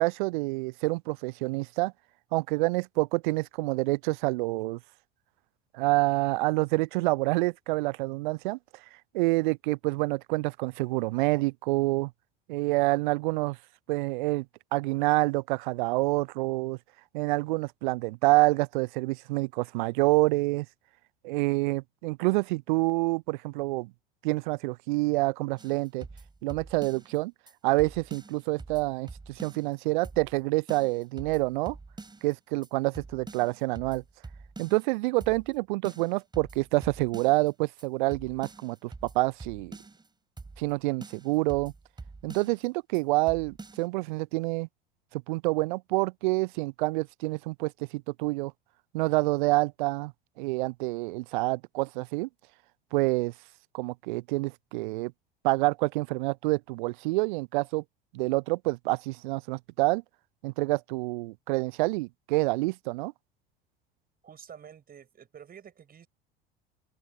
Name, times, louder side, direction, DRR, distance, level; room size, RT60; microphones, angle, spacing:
voice 1, 0.0-1.9 2.3-4.8 5.7-8.6 9.1-12.1 12.5-13.6 13.9-14.5 14.7-16.8 17.1-20.7 21.2-23.9 24.2-26.1 26.4-27.3 27.6-31.8 32.2-34.0 34.6-39.8 40.6-41.7 42.2-44.7 45.1-48.5 48.9-50.1 50.4-52.3 52.9-53.3 53.7-55.1 55.4-57.8 58.1-60.0 60.4-63.1, right 23 dB, 55° right, 0.6 m, -27 dB
sound 1, 25.6-27.2 27.5-27.6 27.8-29.8 30.0-30.4 30.7-32.3 32.6-32.7 32.9-34.9 35.2-35.6 35.8-37.5 37.8-37.9 38.1-40.1 40.4-40.7 41.0-42.7 42.9-43.0 43.3-43.9, right 3 dB, 15° right, 5.4 m, -46 dB
voice 2, 64.2-66.1, right 8 dB, 30° right, 7.8 m, -49 dB
open air
figure-of-eight pair, 70°, 29 cm